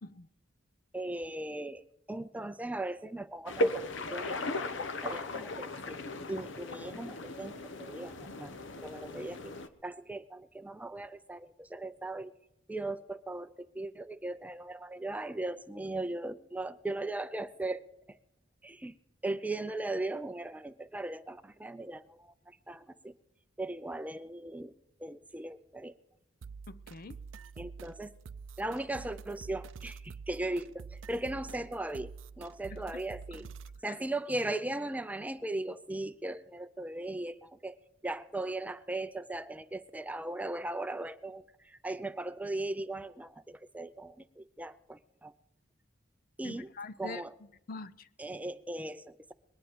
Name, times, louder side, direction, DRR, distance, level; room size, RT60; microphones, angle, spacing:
voice 1, 0.9-1.8 2.1-6.0 6.3-9.5 9.8-12.3 12.7-18.2 18.6-18.9 19.2-23.1 23.6-24.7 25.0-25.9 27.6-28.2 28.6-33.5 33.8-37.8 38.0-45.3 46.4-46.7 47.0-47.3 48.2-49.3, right 2 dB, 10° right, 0.5 m, -38 dB
sound 1, 3.5-9.7, left 1 dB, 65° left, 1.0 m, -36 dB
sound 2, 26.4-33.8, right 5 dB, 70° right, 0.4 m, -47 dB
voice 2, 26.7-27.2 32.7-32.8 33.3-33.5 33.9-34.0 46.4-47.2 47.7-48.1, left 3 dB, 45° left, 0.6 m, -44 dB
20.5 x 10.5 x 5.1 m
head